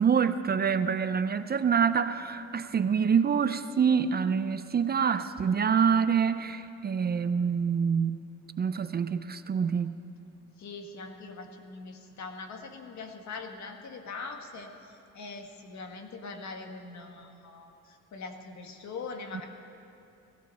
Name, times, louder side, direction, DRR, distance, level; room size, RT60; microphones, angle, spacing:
voice 1, 0.0-8.2 8.6-10.0, right 6 dB, 35° right, 11 dB, 0.5 m, -26 dB
voice 2, 10.6-19.5, left 4 dB, 65° left, 4 dB, 1.6 m, -42 dB
17.5 x 16.5 x 4.2 m, 2.6 s
cardioid pair, 90°, 30 cm